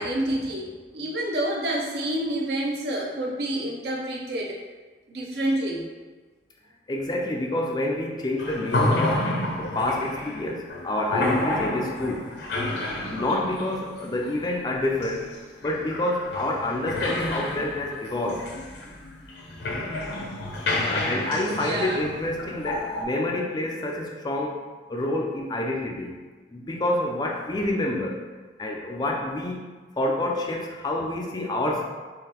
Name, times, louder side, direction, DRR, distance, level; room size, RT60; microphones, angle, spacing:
voice 1, 0.0-4.6 5.1-5.8 21.5-22.0, right 1 dB, 60° right, -2 dB, 0.6 m, -28 dB
voice 2, 6.9-9.2 9.6-12.3 13.1-15.3 15.6-18.5 20.9-24.6 24.9-26.2 26.5-28.2 28.6-29.6 30.0-31.8, left 1 dB, 20° left, 0 dB, 0.3 m, -28 dB
sound 1, 8.4-23.0, left 1 dB, 75° left, 0.6 m, -30 dB
3.8 x 2.9 x 2.9 m, 1.3 s
head